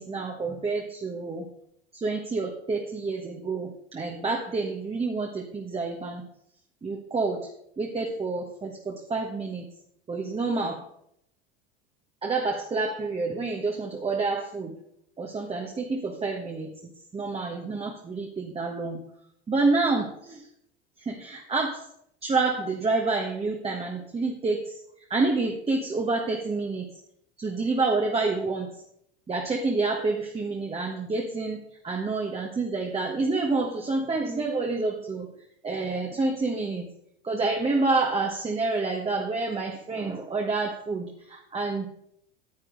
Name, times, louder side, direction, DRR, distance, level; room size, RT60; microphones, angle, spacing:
voice 1, 0.0-1.5 1.9-6.3 6.8-7.5 7.8-9.7 10.1-10.8 12.2-14.7 15.2-16.7 17.1-19.0 19.5-20.4 21.0-21.8 22.2-24.8 25.1-26.9 27.4-28.7 29.3-35.3 35.6-36.9 37.2-41.9, right 3 dB, 20° right, 1 dB, 1.4 m, -28 dB
9.8 x 8.4 x 3.9 m, 0.72 s
hypercardioid pair, 90°, 29 cm